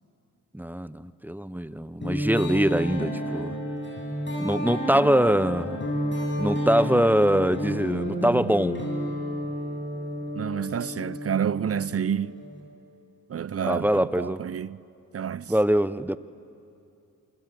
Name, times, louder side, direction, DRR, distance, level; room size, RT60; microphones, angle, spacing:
voice 1, 0.5-3.5 4.4-5.8 6.4-8.8 13.6-14.4 15.5-16.2, equal, 5° right, 0.8 m, -23 dB
sound 1, 2.0-12.6, equal, 25° left, 7.9 m, -31 dB
voice 2, 10.3-12.4 13.3-14.8 15.1-15.5, right 8 dB, 35° right, 0.6 m, -29 dB
26.5 x 25.0 x 7.7 m
supercardioid pair, 50°, 41 cm